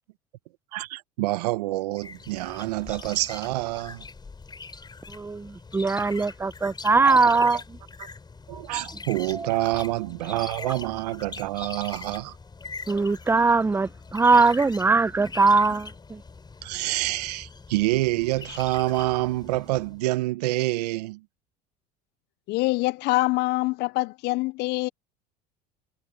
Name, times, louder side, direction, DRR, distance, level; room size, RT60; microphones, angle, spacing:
voice 1, 0.7-4.0 7.0-7.6 8.5-12.4 16.6-21.2, right 18 dB, 85° right, 1.0 m, -27 dB
sound 1, 2.0-20.0, left 4 dB, 20° left, 5.2 m, -42 dB
voice 2, 5.1-7.6 8.5-8.6 9.3-9.6 10.6-10.7 12.9-16.2, right 4 dB, 10° right, 0.6 m, -21 dB
voice 3, 22.5-24.9, left 21 dB, 55° left, 0.5 m, -25 dB
supercardioid pair, 90°, 20 cm